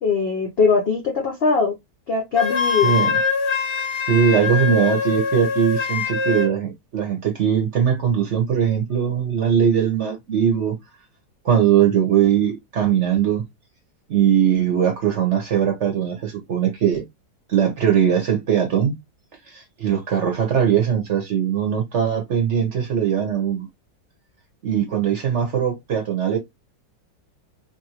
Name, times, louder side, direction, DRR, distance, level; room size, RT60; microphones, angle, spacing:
voice 1, 0.0-1.8 2.1-2.9, left 4 dB, 75° left, 0.5 m, -20 dB
Wind instrument woodwind instrument, 2.3-6.5, left 5 dB, 45° left, 0.8 m, -23 dB
voice 2, 2.8-3.1 4.1-10.7 11.4-13.4 14.1-17.0 17.5-18.9 19.5-23.7 24.6-26.4, right 8 dB, 55° right, 0.8 m, -20 dB
3.0 x 2.5 x 2.8 m
omnidirectional pair, 1.9 m